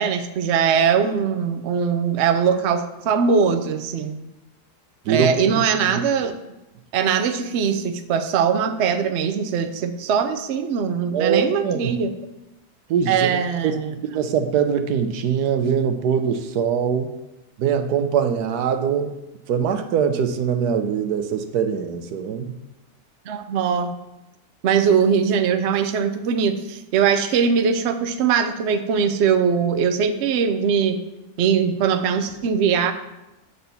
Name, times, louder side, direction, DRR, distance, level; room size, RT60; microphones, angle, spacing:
voice 1, 0.0-4.2 5.1-6.3 6.9-12.1 13.1-13.9 23.3-23.9 24.6-31.0 31.4-32.9, right 6 dB, 60° right, 8 dB, 0.8 m, -21 dB
voice 2, 11.1-11.9 12.9-13.3 13.6-17.1 17.6-19.1 19.5-22.6, right 7 dB, 90° right, 8 dB, 1.3 m, -22 dB
7.7 x 4.2 x 6.9 m, 0.97 s
omnidirectional pair, 1.6 m